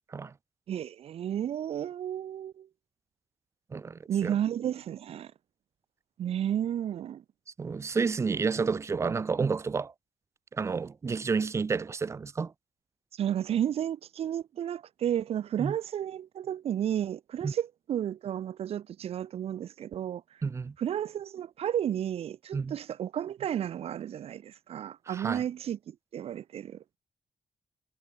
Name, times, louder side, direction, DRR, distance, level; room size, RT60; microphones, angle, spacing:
voice 1, 0.7-2.7 4.1-5.3 6.2-7.2 13.1-20.2 20.8-26.8, right 10 dB, 75° right, 0.8 m, -32 dB
voice 2, 3.7-4.3 7.6-9.9 10.5-12.5 15.6-15.7 17.4-17.5 20.4-20.7 22.5-22.7 25.1-25.4, right 5 dB, 30° right, 0.6 m, -30 dB
wide cardioid pair, 170°, 10 cm